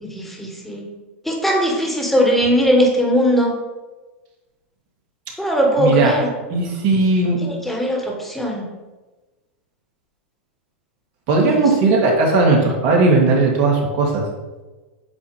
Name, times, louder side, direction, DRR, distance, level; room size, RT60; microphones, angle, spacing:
voice 1, 0.0-0.9 1.2-3.5 5.4-6.3 7.4-8.7 11.4-11.7, equal, 5° left, -1 dB, 1.5 m, -19 dB
voice 2, 5.8-6.1 6.5-7.4 11.3-14.2, right 3 dB, 55° right, 0 dB, 1.8 m, -17 dB
8.2 x 2.7 x 4.9 m, 1.2 s
hypercardioid pair, 105°, 7 cm